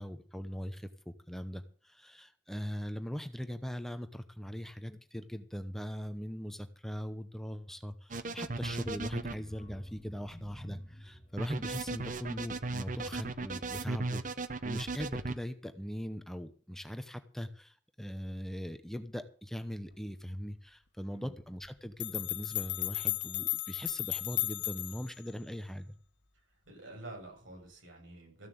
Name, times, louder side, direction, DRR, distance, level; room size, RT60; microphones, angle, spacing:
voice 1, 0.0-14.2 14.6-26.0, equal, ahead, 9 dB, 0.8 m, -40 dB
sound 1, 8.1-9.3 11.4-15.3, right 3 dB, 40° right, 0.8 m, -36 dB
sound 2, 8.4-14.2 14.5-14.8 15.1-15.2, equal, 30° left, 3.1 m, -51 dB
sound 3, 21.6-21.7 22.0-25.1, left 16 dB, 65° left, 1.1 m, -34 dB
voice 2, 26.7-28.5, right 2 dB, 85° right, 0 dB, 7.8 m, -48 dB
14.5 x 7.4 x 7.9 m, 0.42 s
head